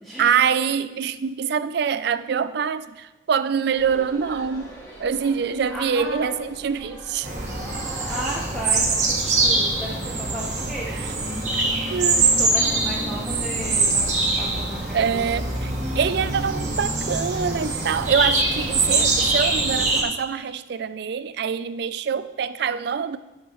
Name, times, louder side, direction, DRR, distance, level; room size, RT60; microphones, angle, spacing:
voice 1, 0.2-4.7 5.0-7.3 10.9-11.0 11.9-12.3 14.9-23.2, right 7 dB, 60° right, 14 dB, 0.3 m, -25 dB
sound 1, 3.7-19.0, equal, 20° left, 1.8 m, -42 dB
voice 2, 5.7-6.5 8.1-11.6 12.4-15.3, equal, ahead, -6 dB, 0.9 m, -34 dB
sound 2, 7.2-20.0, right 3 dB, 40° right, 1.5 m, -23 dB
13.0 x 6.5 x 3.0 m, 1.1 s
head